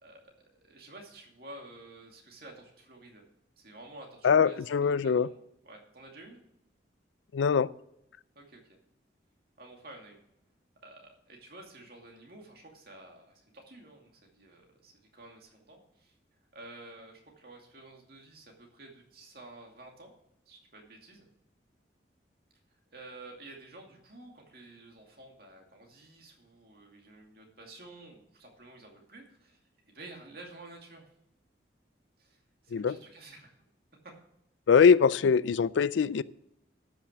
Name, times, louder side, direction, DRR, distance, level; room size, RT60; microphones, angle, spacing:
voice 1, 0.6-3.3 3.6-6.4 8.4-8.6 9.6-10.2 10.8-16.1 16.5-20.1 20.5-21.3 22.9-29.6 29.8-31.1 32.2-32.4 32.6-33.7 34.0-34.1, right 2 dB, 55° right, 1 dB, 2.4 m, -51 dB
voice 2, 4.2-5.3 7.3-7.7 32.7-33.0 34.7-36.2, left 6 dB, 85° left, 19 dB, 0.4 m, -22 dB
12.5 x 6.0 x 6.1 m, 0.79 s
head